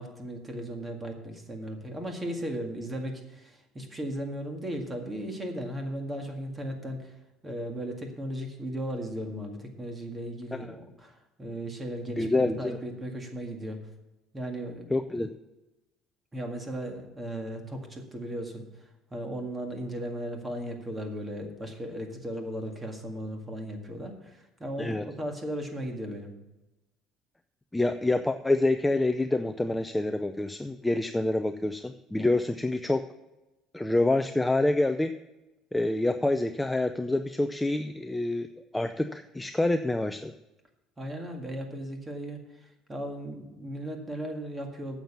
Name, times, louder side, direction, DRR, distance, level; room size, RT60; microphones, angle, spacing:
voice 1, 0.0-7.1 7.4-13.8 14.3-15.0 16.3-18.6 19.1-26.3 41.0-45.0, equal, 15° right, 3 dB, 1.9 m, -36 dB
voice 2, 12.1-12.8 14.9-15.3 24.8-25.0 27.7-33.1 33.7-35.1 35.7-38.5 38.7-40.3, left 2 dB, 5° left, 8 dB, 0.5 m, -27 dB
9.1 x 7.3 x 7.2 m, 1.0 s
cardioid pair, 135°, 0 cm